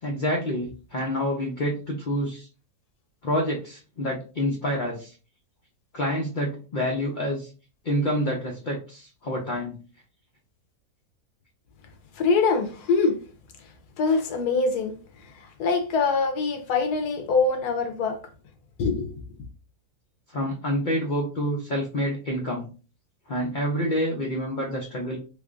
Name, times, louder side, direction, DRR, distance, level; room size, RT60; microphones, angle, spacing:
voice 1, 0.0-2.5 3.2-5.1 5.9-7.5 7.8-9.8 20.3-22.7 23.3-25.2, equal, 55° left, 0.5 m, -27 dB
voice 2, 12.2-13.2 14.0-15.0 15.6-18.2 18.8-19.1, left 4 dB, 85° left, 1.3 m, -23 dB
3.5 x 3.2 x 2.4 m
omnidirectional pair, 1.6 m